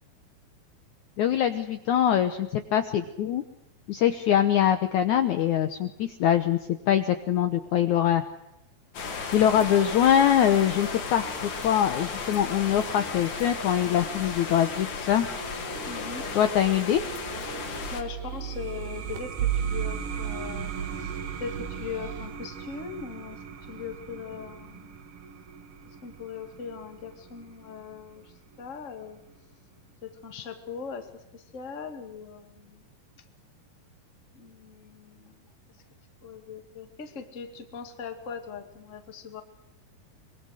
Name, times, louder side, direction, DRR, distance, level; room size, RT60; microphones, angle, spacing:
voice 1, 1.2-3.4 3.9-6.6 6.9-8.2 9.3-15.3 16.4-17.0, left 10 dB, 70° left, 8 dB, 2.0 m, -23 dB
sound 1, 8.9-18.0, left 5 dB, 55° left, 3.6 m, -35 dB
sound 2, 9.0-22.3, right 9 dB, 80° right, 5.0 m, -37 dB
voice 2, 15.9-16.3 17.9-23.4 23.7-25.0 26.0-28.3 28.6-29.2 30.0-32.8 34.3-35.4 36.2-39.4, left 6 dB, 25° left, 6 dB, 1.7 m, -40 dB
sound 3, 18.2-29.4, right 6 dB, 50° right, 1.9 m, -41 dB
24.5 x 23.5 x 6.4 m, 0.88 s
omnidirectional pair, 4.4 m